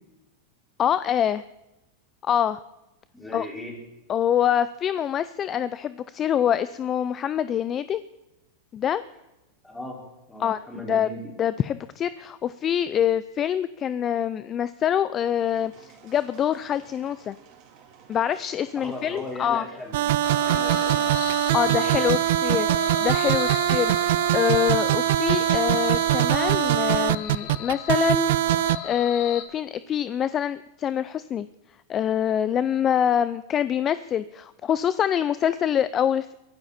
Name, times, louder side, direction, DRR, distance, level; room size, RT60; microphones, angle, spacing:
voice 1, 0.8-1.4 2.2-2.6 3.3-3.5 4.1-8.0 8.7-9.0 10.4-10.6 10.9-11.1 11.4-17.4 18.1-19.6 21.5-28.3 28.8-31.5 31.9-36.3, left 9 dB, 30° left, 15 dB, 0.5 m, -25 dB
voice 2, 3.1-3.8 9.6-11.3 18.8-20.1 20.4-21.0 21.5-22.2, left 1 dB, 5° left, -2 dB, 5.3 m, -37 dB
sound 1, 15.2-21.1, right 7 dB, 45° right, 3.7 m, -52 dB
sound 2, 19.9-28.8, right 14 dB, 65° right, 0.5 m, -22 dB
sound 3, 20.2-29.4, left 9 dB, 55° left, 1.9 m, -36 dB
23.0 x 12.5 x 4.3 m, 0.97 s
hypercardioid pair, 130°, 0 cm